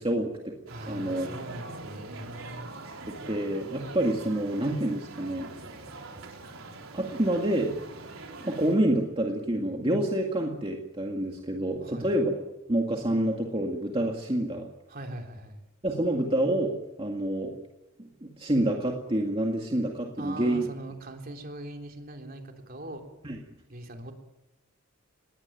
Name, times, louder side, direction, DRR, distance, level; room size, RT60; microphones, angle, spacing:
voice 1, 0.0-0.5 0.9-1.3 3.1-5.5 6.9-7.7 8.4-12.3 12.7-14.7 15.8-17.5 18.0-20.7 23.2-23.4, right 1 dB, 25° right, 1 dB, 2.1 m, -28 dB
voice 2, 0.7-2.7 11.8-12.1 14.9-15.6 20.2-23.0 23.7-24.1, right 1 dB, 45° right, 3 dB, 3.5 m, -41 dB
sound 1, 0.7-8.7, right 3 dB, 80° right, 3.9 m, -43 dB
20.5 x 18.0 x 9.3 m, 0.99 s
head